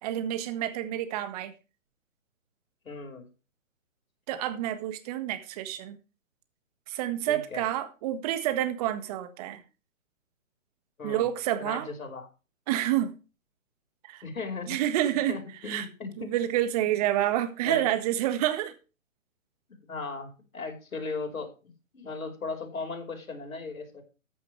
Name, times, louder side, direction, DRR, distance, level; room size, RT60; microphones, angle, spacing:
voice 1, 0.0-1.5 4.3-6.0 6.9-9.6 11.0-11.9 12.7-13.1 14.0-14.2 14.7-15.4 15.7-15.9 16.2-18.7, right 12 dB, 30° right, 10 dB, 1.6 m, -28 dB
voice 2, 2.8-3.3 7.3-7.6 11.0-11.3 11.6-12.3 14.2-14.8 15.3-16.3 17.6-17.9 19.9-21.5 21.9-24.0, left 4 dB, 80° left, 2 dB, 5.1 m, -37 dB
14.0 x 10.0 x 3.3 m, 0.32 s
hypercardioid pair, 145°, 41 cm